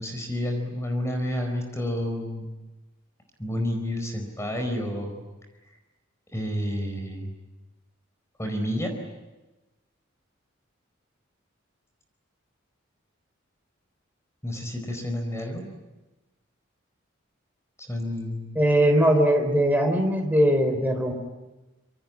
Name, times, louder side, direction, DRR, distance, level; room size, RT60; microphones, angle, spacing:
voice 1, 0.0-2.5 3.4-5.2 6.3-7.3 8.4-8.9 14.4-15.7 17.8-18.6, left 1 dB, 15° left, 4 dB, 4.5 m, -30 dB
voice 2, 18.6-21.1, right 1 dB, 10° right, 3 dB, 4.3 m, -20 dB
27.0 x 25.5 x 8.7 m, 1.1 s
head